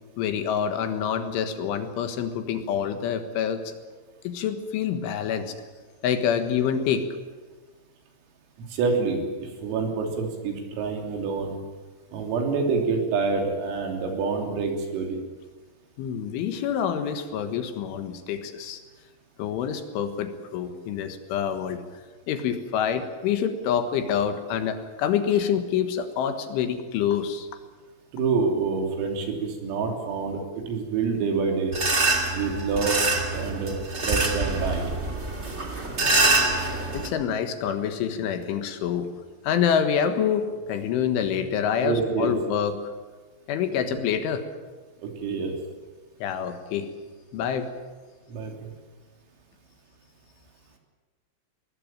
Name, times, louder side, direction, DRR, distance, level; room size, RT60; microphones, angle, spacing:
voice 1, 0.2-3.7 4.3-5.5 6.0-7.1 16.0-18.8 19.4-21.8 22.3-27.5 36.9-39.1 39.4-42.8 43.5-44.4 46.2-46.9 47.3-47.7, left 8 dB, 75° left, 8 dB, 3.8 m, -26 dB
voice 2, 8.7-11.6 12.1-15.2 28.1-31.8 32.3-33.0 33.3-33.8 34.0-34.9 41.8-42.3 43.9-44.0 45.0-45.6 48.3-48.7, right 4 dB, 85° right, 2 dB, 5.9 m, -27 dB
sound 1, 31.7-37.1, right 2 dB, 45° right, 0.8 m, -25 dB
20.5 x 20.5 x 9.0 m, 1.4 s
omnidirectional pair, 6.0 m